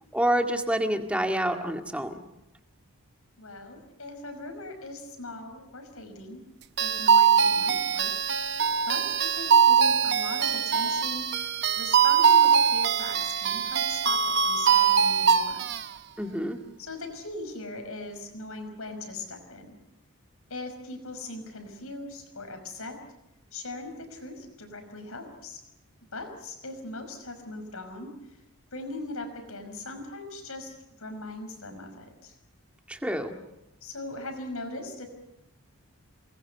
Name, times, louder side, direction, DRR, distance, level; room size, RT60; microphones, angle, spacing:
voice 1, 0.1-2.2 16.2-16.6 32.9-33.4, right 1 dB, 5° right, 4 dB, 2.0 m, -27 dB
voice 2, 3.4-6.4 6.8-8.1 8.9-11.3 11.8-15.7 16.8-19.8 20.5-23.0 23.5-25.6 26.1-28.4 28.7-32.3 33.8-35.1, left 2 dB, 70° left, 6 dB, 5.6 m, -40 dB
sound 1, 6.8-15.9, right 7 dB, 50° right, 0.9 m, -22 dB
28.5 x 21.0 x 6.9 m, 0.88 s
head